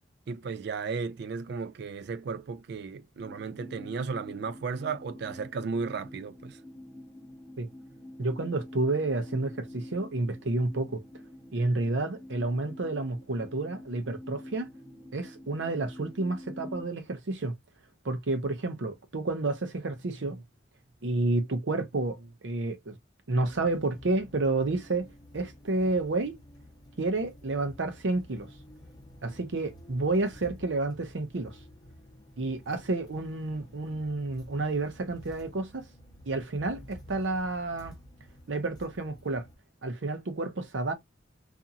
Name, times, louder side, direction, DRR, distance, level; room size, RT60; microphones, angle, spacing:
voice 1, 0.3-6.6, right 5 dB, 60° right, 0.4 m, -34 dB
sound 1, 3.2-16.8, left 1 dB, 5° right, 1.0 m, -47 dB
voice 2, 8.2-11.0 11.5-14.7 15.1-17.5 18.0-20.4 21.0-23.0 23.3-25.1 25.3-26.4 27.0-28.5 29.2-31.6 32.4-35.8 36.3-38.0 38.5-39.5 39.8-40.9, right 2 dB, 80° right, 0.7 m, -30 dB
sound 2, 23.4-39.6, equal, 20° left, 0.7 m, -51 dB
2.8 x 2.6 x 2.3 m
head